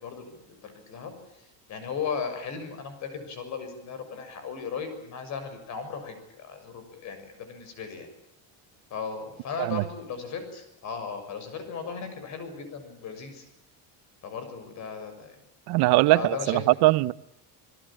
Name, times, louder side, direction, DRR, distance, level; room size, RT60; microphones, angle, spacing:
voice 1, 0.0-8.1 8.9-13.4 14.2-15.4 16.1-16.6, left 6 dB, 45° left, 6.7 m, -36 dB
voice 2, 15.7-17.1, right 19 dB, 75° right, 0.9 m, -21 dB
29.5 x 18.0 x 8.8 m
cardioid pair, 175°, 39 cm